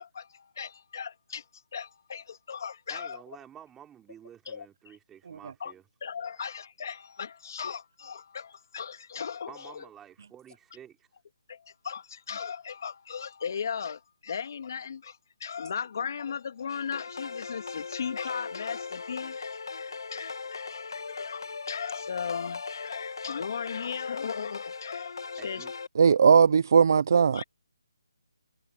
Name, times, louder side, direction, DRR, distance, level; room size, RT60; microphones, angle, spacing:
voice 1, 0.0-3.2 4.4-4.7 5.6-5.7 6.0-9.8 11.5-25.6 27.3-27.4, left 7 dB, 45° left, 2.7 m, -37 dB
voice 2, 2.9-5.8 9.5-11.1 25.4-25.7, right 10 dB, 10° right, 3.1 m, -50 dB
sound 1, 16.7-25.9, left 4 dB, 65° left, 1.7 m, -39 dB
voice 3, 26.0-27.4, right 6 dB, 45° right, 0.6 m, -19 dB
hypercardioid pair, 165°, 2 cm